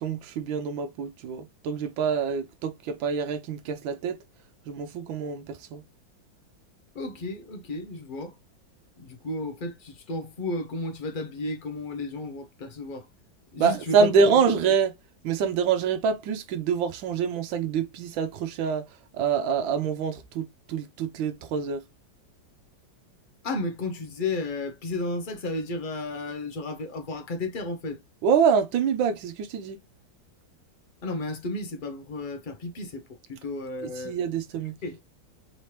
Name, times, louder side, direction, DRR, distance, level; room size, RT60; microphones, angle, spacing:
voice 1, 0.0-4.2 4.7-5.8 13.6-14.9 15.2-18.8 19.1-21.8 28.2-29.8 34.0-34.7, right 6 dB, 90° right, 1.4 m, -26 dB
voice 2, 6.9-8.3 9.0-13.1 13.5-14.0 23.4-28.0 31.0-33.0 33.3-34.2 34.8-35.0, left 2 dB, 70° left, 0.4 m, -33 dB
4.1 x 3.2 x 2.9 m
omnidirectional pair, 2.0 m